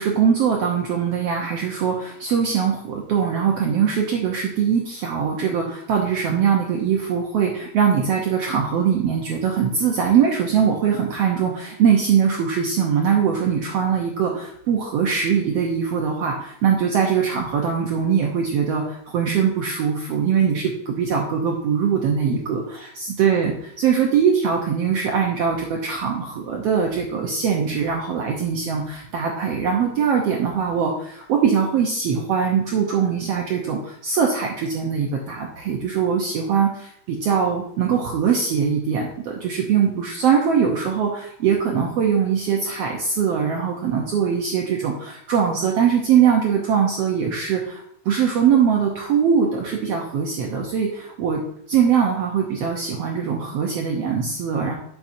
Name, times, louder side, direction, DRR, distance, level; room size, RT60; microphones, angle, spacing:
voice 1, 0.0-23.5 23.8-51.4 51.7-54.8, right 7 dB, 80° right, 0 dB, 1.4 m, -21 dB
9.3 x 7.2 x 2.7 m, 0.70 s
omnidirectional pair, 4.0 m